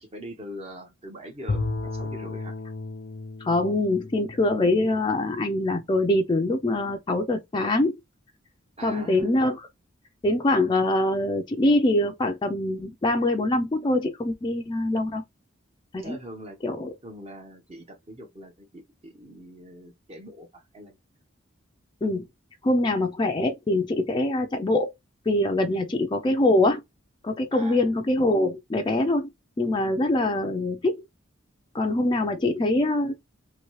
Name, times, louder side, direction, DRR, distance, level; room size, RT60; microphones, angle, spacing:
voice 1, 0.0-2.6 8.8-9.3 16.0-16.6 17.0-21.0 27.5-27.9 32.4-32.7, equal, 30° right, 0.7 m, -42 dB
Bowed string instrument, 1.5-5.7, left 3 dB, 80° left, 0.6 m, -34 dB
voice 2, 3.4-7.9 8.8-9.7 10.2-15.2 15.9-16.2 16.6-16.9 22.0-22.2 22.6-24.9 25.3-26.8 27.2-29.3 29.6-31.0 31.7-33.1, left 2 dB, 25° left, 0.4 m, -24 dB
2.8 x 2.6 x 3.0 m
head